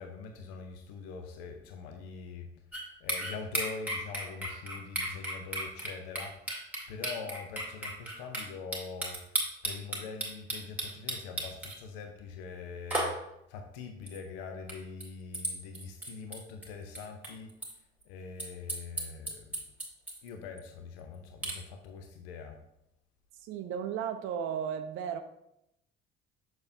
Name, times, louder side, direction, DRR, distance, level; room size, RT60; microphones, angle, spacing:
voice 1, 0.0-2.5 3.0-9.3 9.6-17.5 18.1-19.5 20.2-22.6, left 5 dB, 60° left, 5 dB, 0.7 m, -43 dB
sound 1, 2.7-2.8 3.1-8.4 8.7-11.8 12.9-13.1 14.1-14.2 14.7-14.8 15.0-15.1 15.3-16.7 17.0-17.7 18.0-18.1 18.4-20.3 20.6-20.7 21.4-21.6, right 1 dB, 5° right, 1.8 m, -34 dB
voice 2, 23.4-25.2, right 8 dB, 40° right, 8 dB, 0.5 m, -34 dB
6.7 x 6.0 x 2.6 m, 0.80 s
figure-of-eight pair, 55°, 31 cm